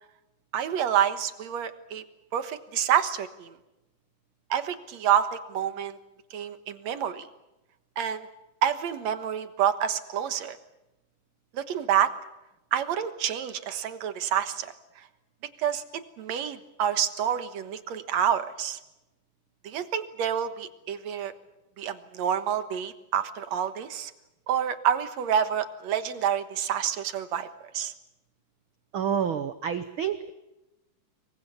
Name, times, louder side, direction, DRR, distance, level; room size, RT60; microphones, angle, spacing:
voice 1, 0.5-2.0 2.3-3.5 4.5-6.0 6.3-7.3 8.0-8.3 8.6-10.6 11.5-12.1 12.7-14.7 15.6-18.8 19.6-21.3 21.8-24.1 24.5-27.5 27.7-27.9, right 9 dB, 60° right, 10 dB, 2.3 m, -28 dB
voice 2, 28.9-30.3, right 8 dB, 85° right, 11 dB, 1.1 m, -28 dB
27.5 x 23.0 x 7.1 m, 0.96 s
omnidirectional pair, 3.8 m